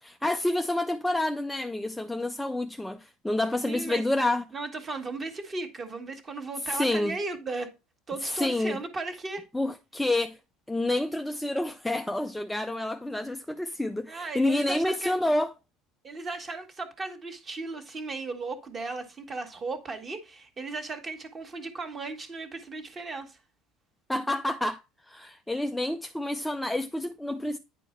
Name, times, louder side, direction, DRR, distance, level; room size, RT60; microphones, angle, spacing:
voice 1, 0.0-4.4 6.6-7.1 8.2-8.8 9.5-10.4 10.7-15.5 24.1-24.8 25.1-27.6, left 1 dB, 5° left, 0.4 m, -28 dB
voice 2, 3.7-4.0 4.5-7.7 8.1-9.4 14.1-15.1 16.0-23.4, right 3 dB, 20° right, 1.4 m, -36 dB
9.8 x 4.5 x 4.3 m
cardioid pair, 155°, 0 cm